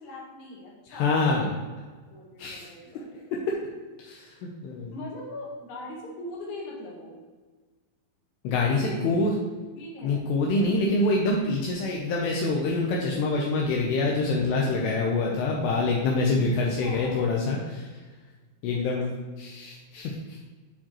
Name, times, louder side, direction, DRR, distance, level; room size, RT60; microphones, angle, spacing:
voice 1, 0.0-1.2 2.0-3.1 4.9-7.2 8.7-9.3 9.7-10.3 16.8-17.2, left 1 dB, 55° left, -4 dB, 2.3 m, -40 dB
voice 2, 0.9-1.5 2.4-2.7 3.5-3.6 4.0-4.3 4.6-4.9 8.4-9.3 10.0-18.0 18.6-19.1 19.4-20.4, left 3 dB, 85° left, -2 dB, 2.4 m, -26 dB
11.5 x 4.6 x 3.0 m, 1.4 s
omnidirectional pair, 5.7 m